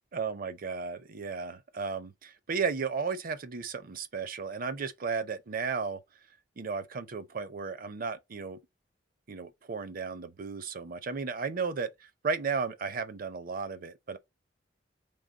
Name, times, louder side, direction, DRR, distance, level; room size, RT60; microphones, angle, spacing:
voice 1, 0.1-6.0 6.6-8.6 9.3-11.9 12.2-14.2, right 5 dB, 50° right, 0.6 m, -34 dB
3.8 x 3.3 x 3.9 m
head